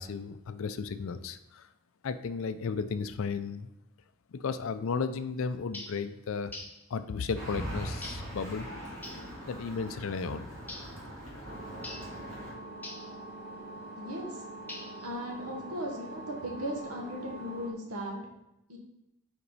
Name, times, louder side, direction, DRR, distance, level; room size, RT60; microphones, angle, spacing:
voice 1, 0.0-1.7 2.0-3.7 4.3-6.6 6.9-8.7 9.5-10.5, left 5 dB, 65° left, 11 dB, 0.4 m, -34 dB
sound 1, 5.7-6.0 6.5-6.8 8.0-8.3 9.0-9.3 10.7-11.0 11.8-12.1 12.8-13.1 14.7-15.1, left 2 dB, 10° left, 0.5 m, -43 dB
sound 2, 7.4-12.5, equal, 65° right, 2.1 m, -41 dB
sound 3, 11.4-17.7, right 2 dB, 40° right, 0.8 m, -44 dB
voice 2, 14.0-14.4 15.0-18.2 18.7-18.8, equal, 85° right, 0 dB, 1.4 m, -37 dB
5.6 x 4.5 x 4.0 m, 0.87 s
head